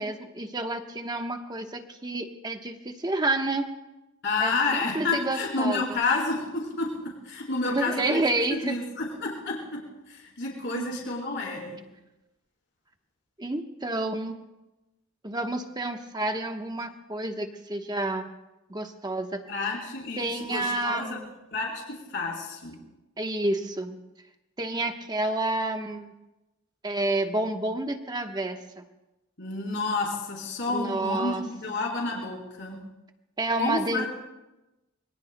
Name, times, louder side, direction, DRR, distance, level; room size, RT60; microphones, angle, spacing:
voice 1, 0.0-3.7 4.4-6.0 7.6-8.8 10.7-10.9 13.4-14.4 15.2-18.3 18.7-19.5 20.2-21.3 23.2-24.0 24.6-26.1 26.8-28.8 30.7-31.4 33.4-34.1, right 2 dB, 20° right, 5 dB, 1.1 m, -29 dB
voice 2, 4.2-6.9 7.2-8.2 8.5-11.8 19.5-21.2 21.5-22.8 29.4-32.8 33.6-34.1, left 3 dB, 60° left, -3 dB, 4.0 m, -30 dB
25.5 x 22.0 x 2.2 m, 0.99 s
head